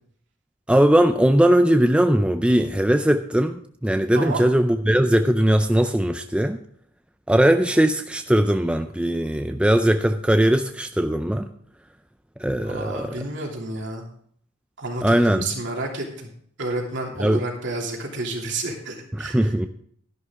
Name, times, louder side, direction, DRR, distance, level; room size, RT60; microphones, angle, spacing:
voice 1, 0.7-6.6 7.3-11.5 12.4-13.2 15.0-15.4 17.2-17.4 19.1-19.7, right 1 dB, 5° right, 7 dB, 0.4 m, -19 dB
voice 2, 4.1-4.5 12.6-14.0 14.8-16.3 16.6-19.4, right 2 dB, 60° right, 0 dB, 3.0 m, -30 dB
13.0 x 11.0 x 3.8 m, 0.63 s
head